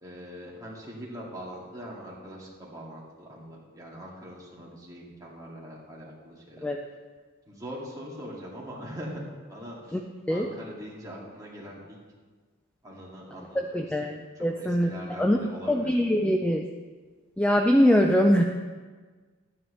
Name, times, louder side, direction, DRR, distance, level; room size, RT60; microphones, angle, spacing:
voice 1, 0.0-6.7 7.5-9.2 9.5-10.0 10.3-12.0 12.8-15.9, equal, 15° right, -5 dB, 2.1 m, -42 dB
voice 2, 13.5-15.4 15.7-16.6 17.4-18.4, equal, 5° left, 3 dB, 0.4 m, -23 dB
12.0 x 9.1 x 3.1 m, 1.4 s
head